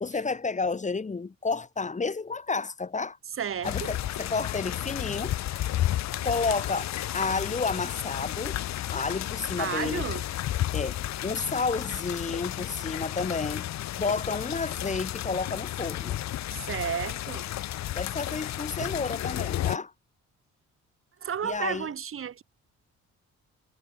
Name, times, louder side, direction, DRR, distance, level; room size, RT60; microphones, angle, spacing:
voice 1, 0.0-3.2 3.6-5.3 6.2-8.6 8.9-10.1 10.7-13.7 14.0-16.2 17.9-19.9 21.4-21.9, left 4 dB, 25° left, 1.4 m, -31 dB
voice 2, 3.4-3.7 9.6-10.2 16.5-17.5 18.8-18.9 21.2-22.4, right 8 dB, 45° right, 1.1 m, -32 dB
sound 1, 3.6-19.8, left 13 dB, 65° left, 0.8 m, -32 dB
cardioid pair, 90°, 30 cm